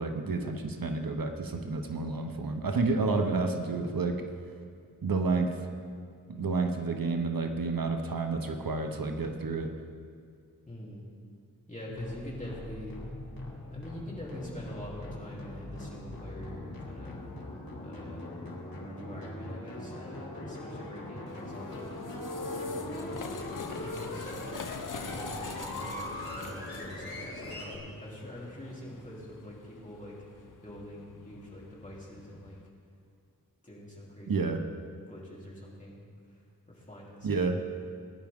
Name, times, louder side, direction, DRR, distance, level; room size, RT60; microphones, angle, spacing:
voice 1, 0.0-4.2 5.0-5.6 6.3-9.7 34.3-34.6 37.2-37.6, right 3 dB, 75° right, 5 dB, 0.9 m, -30 dB
voice 2, 10.7-11.1 11.7-13.0 13.7-17.2 17.8-18.4 19.0-21.9 22.3-24.3 24.9-32.6 33.6-34.5 35.1-36.0 36.3-36.4 36.7-37.6, equal, 20° left, -5 dB, 3.2 m, -45 dB
sound 1, 11.9-27.8, left 1 dB, 85° left, 2.4 m, -41 dB
sound 2, 21.3-32.7, left 4 dB, 65° left, 0.7 m, -44 dB
18.5 x 10.5 x 3.6 m, 2.2 s
wide cardioid pair, 75°, 34 cm